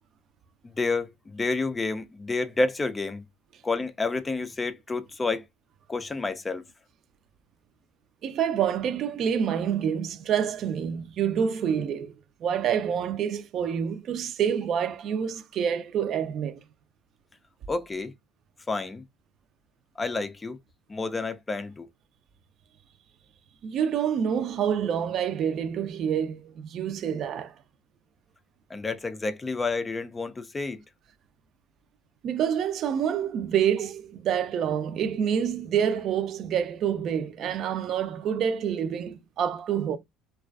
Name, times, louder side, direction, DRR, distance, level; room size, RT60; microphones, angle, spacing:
voice 1, 0.6-3.2 3.6-5.4 5.9-6.6 17.7-18.1 18.7-19.0 20.0-20.6 20.9-21.9 28.7-30.8, left 3 dB, 20° left, 0.3 m, -29 dB
voice 2, 8.2-12.1 12.4-16.6 23.6-27.5 32.2-40.0, right 8 dB, 55° right, 0.4 m, -27 dB
2.4 x 2.3 x 2.3 m
supercardioid pair, 80°, 0 cm